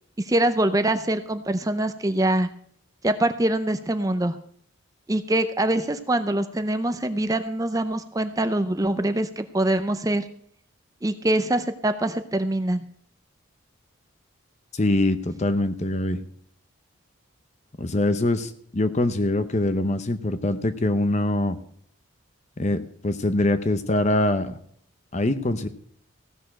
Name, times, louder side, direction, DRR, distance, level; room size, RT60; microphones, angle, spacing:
voice 1, 0.3-2.5 3.0-4.4 5.1-10.2 11.0-12.8, right 1 dB, 15° right, 10 dB, 0.5 m, -24 dB
voice 2, 14.8-16.2 17.8-21.6 22.6-24.5 25.1-25.7, left 1 dB, 35° left, 11 dB, 0.7 m, -23 dB
15.5 x 6.7 x 6.2 m, 0.62 s
head